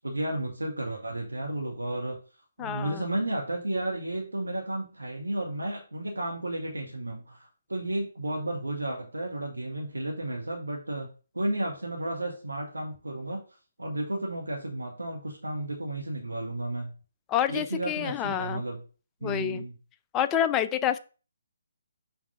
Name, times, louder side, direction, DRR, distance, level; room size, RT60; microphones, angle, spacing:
voice 1, 0.0-2.2 2.6-11.1 11.3-13.4 13.8-16.9 17.5-18.8 19.2-19.7, right 1 dB, 90° right, 0 dB, 1.5 m, -32 dB
voice 2, 2.6-3.0 17.3-18.6 19.2-19.6 20.1-21.0, left 10 dB, 15° left, 10 dB, 0.4 m, -28 dB
6.0 x 3.5 x 5.5 m, 0.37 s
figure-of-eight pair, 145°, 0 cm